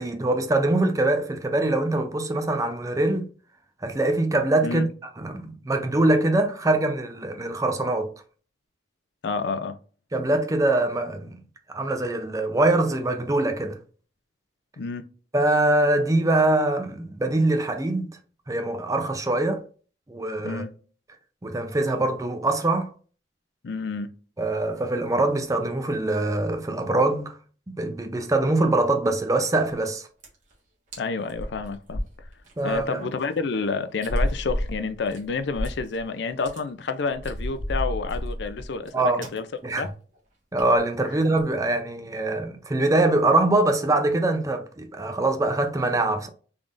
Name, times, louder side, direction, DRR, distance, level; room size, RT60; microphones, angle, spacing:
voice 1, 0.0-3.2 3.8-4.9 5.2-8.1 10.1-11.4 11.7-13.8 15.3-18.2 18.5-19.6 20.1-20.6 21.4-22.9 24.4-27.4 27.7-30.1 32.6-33.1 38.9-39.2 39.6-39.9 40.5-46.3, right 2 dB, 20° right, 0.5 m, -23 dB
voice 2, 9.2-9.8 14.8-15.0 20.4-20.7 23.6-24.1 31.0-32.0 32.6-39.5 39.8-39.9, left 4 dB, 70° left, 0.5 m, -29 dB
sound 1, 29.7-29.9 30.2-30.5 30.9-31.0 31.3-32.8 33.2-33.3 34.0-36.0 36.3-36.6 37.1-38.9 39.2-39.4 39.7-39.9 40.1-40.2 40.6-40.8 41.2-41.5, equal, 45° right, 1.3 m, -31 dB
3.7 x 3.5 x 2.5 m
head